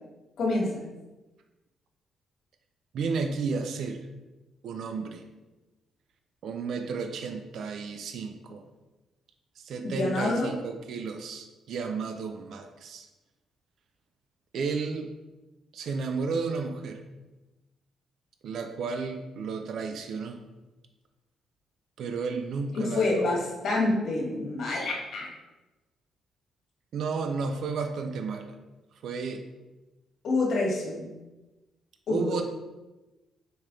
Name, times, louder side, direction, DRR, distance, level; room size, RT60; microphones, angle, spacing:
voice 1, 0.4-0.8 9.8-10.5 22.7-25.3 30.2-31.1 32.1-32.4, left 2 dB, 65° left, -3 dB, 1.5 m, -27 dB
voice 2, 2.9-4.1 4.6-5.2 6.4-8.6 9.6-13.1 14.5-15.1 15.7-17.0 18.4-20.4 22.0-23.4 26.9-28.5 29.0-29.4 32.1-32.4, right 5 dB, 70° right, 6 dB, 0.4 m, -32 dB
4.3 x 3.3 x 3.6 m, 1.1 s
cardioid pair, 90°, 0 cm